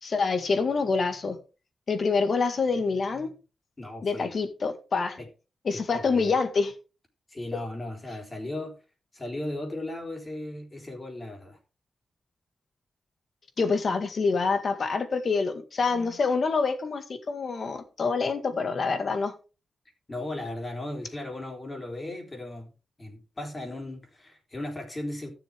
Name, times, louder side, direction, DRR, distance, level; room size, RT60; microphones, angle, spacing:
voice 1, 0.0-1.4 1.9-3.3 4.0-5.2 5.6-6.7 13.6-19.3, left 4 dB, 55° left, 1.9 m, -26 dB
voice 2, 3.8-4.3 5.2-5.3 5.7-6.3 7.3-8.8 9.1-11.6 20.1-22.7 23.0-25.3, left 1 dB, 25° left, 3.6 m, -36 dB
15.5 x 7.1 x 3.6 m
wide cardioid pair, 120°, 0 cm